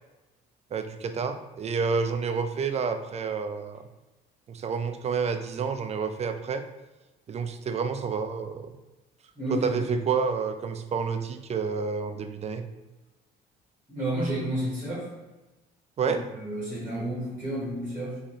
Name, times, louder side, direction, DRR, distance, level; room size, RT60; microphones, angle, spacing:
voice 1, 0.7-3.9 4.5-6.6 7.3-8.7 9.5-12.7 16.0-16.2, right 5 dB, 35° right, 8 dB, 0.4 m, -29 dB
voice 2, 9.3-9.7 13.9-15.1 16.0-18.2, right 1 dB, 10° right, -6 dB, 1.4 m, -31 dB
3.7 x 2.7 x 3.1 m, 1.1 s
supercardioid pair, 85°, 19 cm